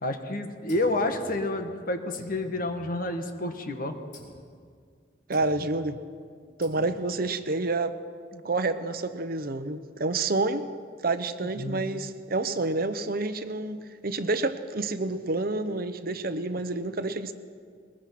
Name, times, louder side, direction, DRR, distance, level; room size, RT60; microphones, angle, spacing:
voice 1, 0.0-4.0 8.3-8.4 11.6-11.8, left 2 dB, 50° left, 6 dB, 1.8 m, -29 dB
sound 1, 0.7-1.7 2.1-3.4 4.1-4.6 5.3-5.9 6.6-7.2, left 1 dB, 85° left, 4.0 m, -51 dB
voice 2, 5.3-6.0 6.6-8.0 8.4-10.7 11.0-17.3, right 2 dB, 55° right, 10 dB, 1.0 m, -28 dB
21.0 x 21.0 x 6.0 m, 2.1 s
head